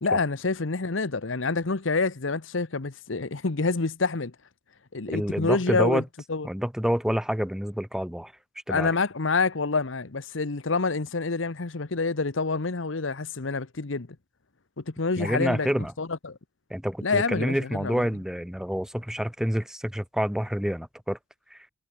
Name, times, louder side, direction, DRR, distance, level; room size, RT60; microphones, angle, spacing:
voice 1, 0.0-4.3 4.9-6.0 6.3-6.5 8.7-14.1 14.8-15.7 16.0-16.4 17.0-18.0, left 4 dB, 75° left, 1.1 m, -27 dB
voice 2, 5.1-6.0 6.4-8.3 8.7-8.9 15.2-15.9 16.7-21.2 21.5-21.6, equal, 5° right, 0.6 m, -28 dB
head